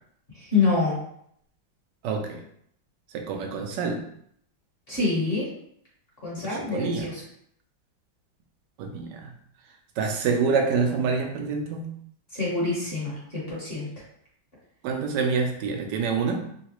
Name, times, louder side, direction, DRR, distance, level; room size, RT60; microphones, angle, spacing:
voice 1, 0.3-1.0 4.9-5.5 6.2-7.2 12.3-13.9, left 3 dB, 35° left, -7 dB, 1.2 m, -26 dB
voice 2, 2.0-2.4 3.1-4.1 6.4-7.0 8.8-9.3 10.0-11.9 14.8-16.4, right 5 dB, 75° right, 3 dB, 1.1 m, -27 dB
3.8 x 2.3 x 2.9 m, 0.68 s
omnidirectional pair, 2.1 m